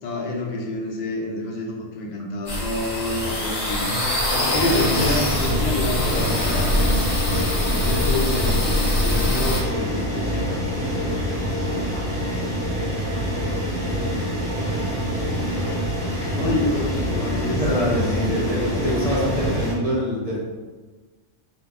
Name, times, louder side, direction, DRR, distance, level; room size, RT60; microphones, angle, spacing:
voice 1, 0.0-3.9 4.3-6.9 7.6-8.6 9.0-10.6 16.3-18.2 18.6-19.0, left 2 dB, 70° left, -2 dB, 0.4 m, -28 dB
sound 1, 2.5-9.6, left 1 dB, 50° left, 0.7 m, -24 dB
Slam, 2.6-2.9 3.2-3.3 3.7-3.8 5.6-8.2, right 1 dB, 80° right, 1.0 m, -31 dB
sound 2, 4.5-19.7, equal, 5° left, 0.5 m, -25 dB
voice 2, 17.6-20.4, equal, 45° right, -6 dB, 0.4 m, -24 dB
2.2 x 2.1 x 3.5 m, 1.3 s
omnidirectional pair, 1.3 m